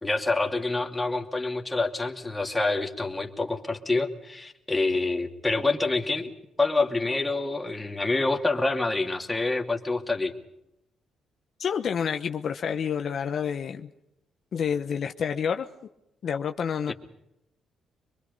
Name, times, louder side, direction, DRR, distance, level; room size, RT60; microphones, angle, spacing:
voice 1, 0.0-6.3 6.6-10.3 16.9-17.0, left 3 dB, 15° left, 2 dB, 2.7 m, -27 dB
voice 2, 11.6-13.9 14.5-15.7 16.2-16.9, left 7 dB, 55° left, 6 dB, 1.0 m, -28 dB
24.5 x 23.0 x 5.4 m, 0.85 s
cardioid pair, 90°, 0 cm